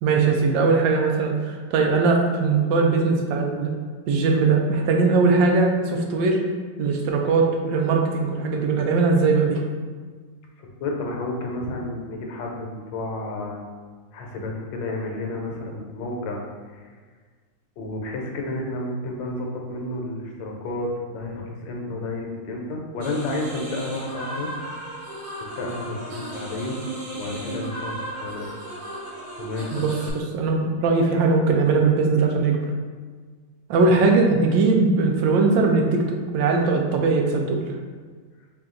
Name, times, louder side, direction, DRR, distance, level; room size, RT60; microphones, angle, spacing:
voice 1, 0.0-3.7 4.1-6.4 6.8-9.6 29.7-32.6 33.7-37.6, right 4 dB, 80° right, 2 dB, 1.3 m, -20 dB
voice 2, 10.6-13.6 14.1-16.4 16.7-17.0 17.8-24.5 25.4-26.8 27.1-28.5 29.4-29.9, left 2 dB, 75° left, 0 dB, 1.3 m, -31 dB
sound 1, 23.0-30.1, right 1 dB, 40° right, 0.7 m, -35 dB
4.1 x 2.3 x 3.7 m, 1.5 s
omnidirectional pair, 2.0 m